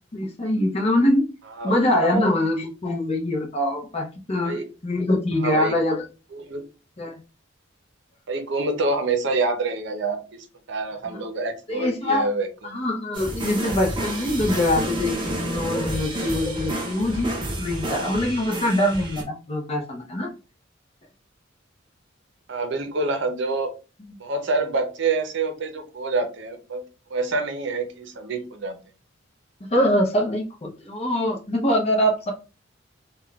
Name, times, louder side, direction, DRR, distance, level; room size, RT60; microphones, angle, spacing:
voice 1, 0.1-1.2 1.6-6.0 7.0-7.2 11.1-11.2 11.7-12.3 12.6-20.3 29.7-32.3, left 1 dB, 30° left, 0 dB, 0.6 m, -23 dB
voice 2, 5.4-5.8 6.3-6.6 8.3-12.8 22.5-23.7 24.2-26.8 27.1-28.8, right 3 dB, 65° right, 6 dB, 0.6 m, -27 dB
sound 1, 13.1-19.2, right 1 dB, 25° right, 0.6 m, -30 dB
3.6 x 2.2 x 2.3 m, 0.33 s
head